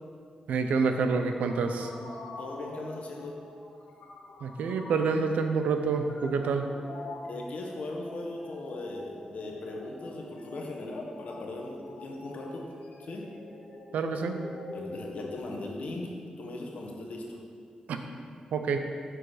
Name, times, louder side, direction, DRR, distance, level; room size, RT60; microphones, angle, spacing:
voice 1, 0.5-1.9 4.4-6.7 13.9-14.4 17.9-18.0 18.5-18.9, right 5 dB, 85° right, 6 dB, 0.5 m, -27 dB
sound 1, 1.0-15.4, left 2 dB, 90° left, 0.9 m, -46 dB
voice 2, 2.4-3.3 7.2-12.6 13.0-13.3 14.7-16.1 16.4-17.4, left 2 dB, 70° left, -1 dB, 1.1 m, -38 dB
6.2 x 4.8 x 4.8 m, 2.2 s
cardioid pair, 60°, 2 cm